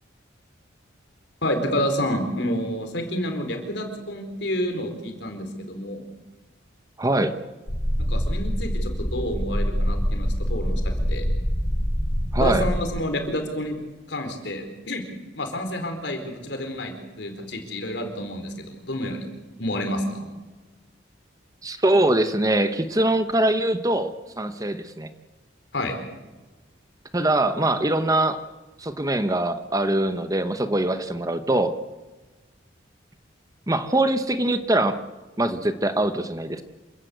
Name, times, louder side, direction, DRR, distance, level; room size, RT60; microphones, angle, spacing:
voice 1, 1.4-6.0 8.1-11.3 12.4-13.8 14.1-15.1 15.4-19.3 19.6-20.3 25.7-26.0, left 1 dB, 65° left, 5 dB, 4.4 m, -29 dB
voice 2, 7.0-7.3 12.3-12.6 21.6-24.1 24.4-25.1 27.1-28.4 28.8-31.7 33.7-35.0 35.4-36.6, right 1 dB, 20° right, 9 dB, 1.0 m, -23 dB
sound 1, 7.7-12.8, equal, 40° left, 5.8 m, -25 dB
27.5 x 16.0 x 8.0 m, 1.2 s
head